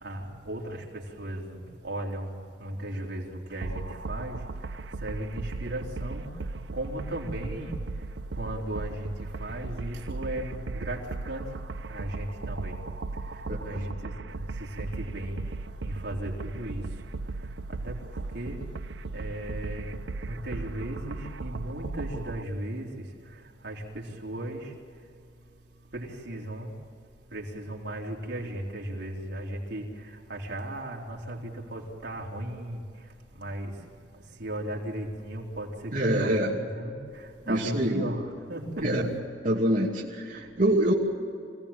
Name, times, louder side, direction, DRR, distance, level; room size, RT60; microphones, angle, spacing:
voice 1, 0.0-0.8 1.2-2.3 2.6-4.3 5.0-6.2 6.7-7.7 8.4-9.1 9.4-11.0 11.2-11.4 11.9-12.8 13.6-14.4 14.8-15.4 15.8-16.8 17.7-18.6 19.1-20.0 20.3-22.9 23.6-24.7 25.9-26.7 27.3-29.9 30.3-32.8 33.4-33.7 34.4-36.3 36.6-37.0 37.5-38.2 38.5-38.9, right 1 dB, 70° right, -1 dB, 3.9 m, -36 dB
sound 1, 3.6-22.4, right 3 dB, 85° right, 0.6 m, -37 dB
voice 2, 13.5-13.8 35.9-36.6 37.5-38.1 38.8-39.1 39.4-40.9, right 1 dB, 50° right, -5 dB, 2.6 m, -25 dB
26.0 x 17.5 x 8.9 m, 2.5 s
head